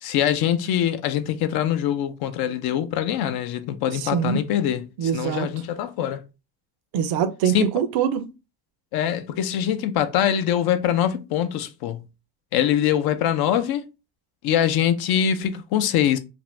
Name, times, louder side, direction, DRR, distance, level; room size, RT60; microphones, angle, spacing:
voice 1, 0.0-6.2 7.5-7.7 8.9-12.0 12.5-13.8 14.4-16.2, left 10 dB, 60° left, 0.6 m, -23 dB
voice 2, 3.9-4.4 5.0-5.5 6.9-8.3, right 8 dB, 65° right, 0.6 m, -24 dB
2.6 x 2.5 x 3.1 m
supercardioid pair, 85°, 41 cm